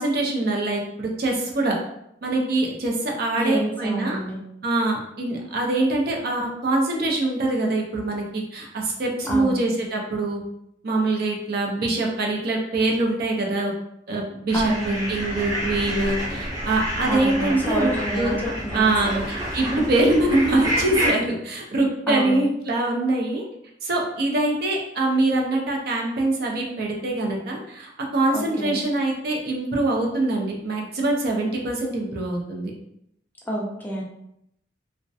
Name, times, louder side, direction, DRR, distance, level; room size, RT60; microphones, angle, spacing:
voice 1, 0.0-1.8 2.2-4.2 4.6-10.4 10.8-13.7 14.1-18.4 18.7-23.4 23.8-32.7, right 2 dB, 60° right, 0 dB, 0.5 m, -24 dB
voice 2, 3.4-4.4 9.2-9.6 14.5-15.1 17.1-18.3 18.6-19.2 22.1-22.4 28.3-28.8 33.5-34.0, right 1 dB, 10° left, -3 dB, 0.4 m, -27 dB
sound 1, 14.5-21.1, equal, 20° right, 0.7 m, -29 dB
2.3 x 2.1 x 2.6 m, 0.77 s
head